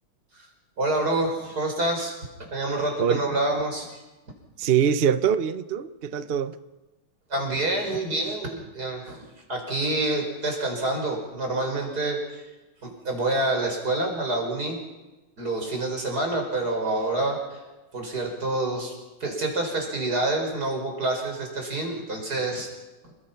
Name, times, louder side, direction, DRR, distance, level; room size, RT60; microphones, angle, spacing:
voice 1, 0.8-2.2 2.5-4.0 7.3-12.4 12.8-14.8 15.4-17.6 17.9-18.9 19.2-22.7, right 2 dB, 45° right, 5.8 m, -27 dB
voice 2, 4.6-6.5, right 8 dB, 75° right, 0.5 m, -23 dB
28.5 x 21.5 x 5.9 m
omnidirectional pair, 2.3 m